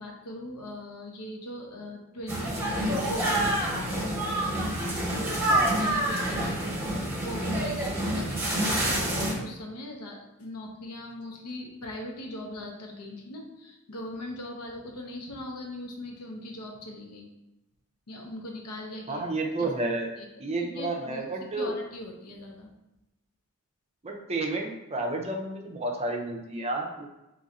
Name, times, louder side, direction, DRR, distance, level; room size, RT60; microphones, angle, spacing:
voice 1, 0.0-4.0 5.8-17.3 18.1-19.2 19.6-20.3 20.6-21.2 21.5-22.7, left 1 dB, 90° left, 1 dB, 0.7 m, -40 dB
sound 1, 2.3-9.3, right 1 dB, 10° right, 1.1 m, -27 dB
voice 2, 19.1-20.1 20.4-21.7 24.0-27.1, right 2 dB, 30° right, 1 dB, 0.5 m, -31 dB
3.1 x 2.5 x 4.0 m, 0.95 s
head